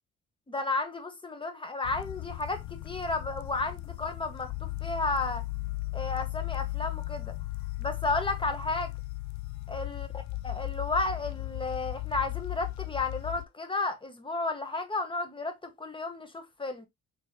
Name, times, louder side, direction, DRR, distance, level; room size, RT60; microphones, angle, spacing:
voice 1, 0.5-5.4 5.9-7.3 7.8-8.9 9.7-10.1 10.4-16.9, left 3 dB, 15° left, 1.1 m, -33 dB
sound 1, 1.8-13.5, left 20 dB, 70° left, 0.4 m, -36 dB
4.5 x 3.4 x 2.8 m
cardioid pair, 90°, 30 cm